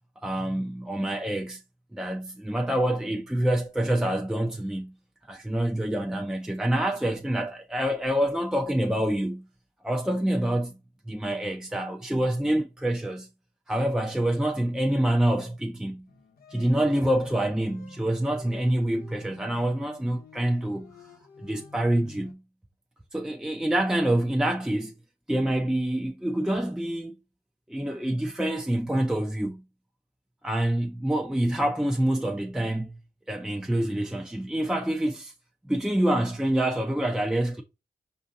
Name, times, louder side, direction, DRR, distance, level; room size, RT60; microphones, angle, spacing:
voice 1, 0.2-1.6 1.9-4.9 5.3-9.4 9.8-10.7 11.1-13.3 13.7-16.1 16.5-20.9 21.4-22.4 23.1-24.9 25.3-27.1 27.7-29.6 30.4-33.0 33.3-35.3 35.7-37.6, right 1 dB, 5° right, 0.6 m, -26 dB
sound 1, 16.1-22.3, left 5 dB, 80° left, 0.8 m, -50 dB
4.9 x 2.7 x 3.5 m
cardioid pair, 50°, 15 cm